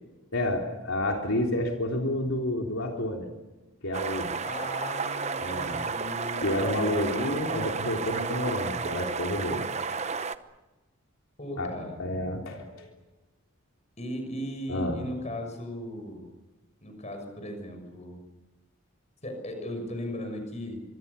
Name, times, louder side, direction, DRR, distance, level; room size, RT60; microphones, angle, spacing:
voice 1, 0.3-3.3 3.8-4.4 5.4-5.8 6.4-9.6 11.6-11.7 12.0-12.9 14.7-15.0, left 1 dB, 75° left, 1 dB, 3.5 m, -29 dB
sound 1, 3.9-10.3, right 5 dB, 30° right, 0.9 m, -32 dB
voice 2, 4.4-7.0 11.4-12.6 14.0-16.3 16.8-18.2 19.2-20.8, left 1 dB, 30° left, 5 dB, 6.3 m, -37 dB
25.5 x 25.5 x 7.0 m, 1.1 s
head